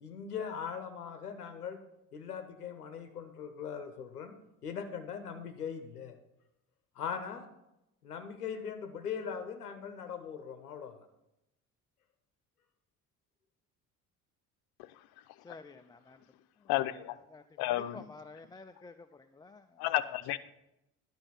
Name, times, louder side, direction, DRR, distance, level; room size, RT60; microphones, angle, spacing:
voice 1, 0.0-1.8 2.1-4.3 4.6-6.1 7.0-7.5 8.0-11.0, left 7 dB, 90° left, 8 dB, 0.8 m, -40 dB
voice 2, 15.4-16.2 16.6-16.7 17.3-19.9, left 3 dB, 10° left, 7 dB, 0.3 m, -52 dB
voice 3, 16.7-17.1 17.6-18.0 19.8-20.4, left 15 dB, 55° left, 13 dB, 0.7 m, -31 dB
11.5 x 5.6 x 5.8 m, 0.88 s
hypercardioid pair, 55°, 44 cm